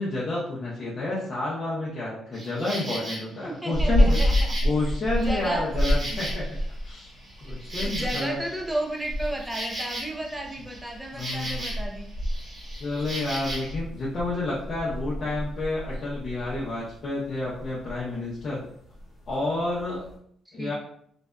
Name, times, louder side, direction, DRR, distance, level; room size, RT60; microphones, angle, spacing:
voice 1, 0.0-4.2 4.6-6.4 6.8-7.1 7.4-8.4 11.1-11.7 12.8-18.7 19.3-20.1 20.5-20.7, left 2 dB, 50° left, -7 dB, 0.6 m, -30 dB
Insect, 2.3-3.2 3.7-6.7 7.1-11.9 12.2-13.7, right 1 dB, 35° right, 0.8 m, -37 dB
voice 2, 3.4-4.6 5.1-5.7 6.1-6.2 7.8-12.1 15.2-15.3 20.5-20.7, right 1 dB, 5° right, 1 dB, 0.5 m, -33 dB
sound 1, 3.7-20.2, equal, 75° left, 1.0 m, -30 dB
2.6 x 2.2 x 2.2 m, 0.68 s
cardioid pair, 90°, 0 cm